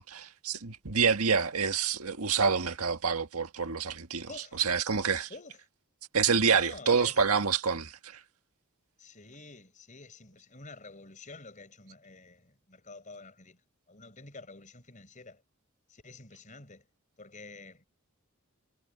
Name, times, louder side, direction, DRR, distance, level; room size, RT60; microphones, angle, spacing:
voice 1, 0.0-4.3 4.6-5.3 6.1-8.2, right 5 dB, 85° right, 1.7 m, -27 dB
voice 2, 4.3-4.6 5.3-5.6 6.5-7.2 9.0-13.6 13.9-15.4 15.9-16.9 17.2-17.9, left 3 dB, 35° left, 5.0 m, -49 dB
head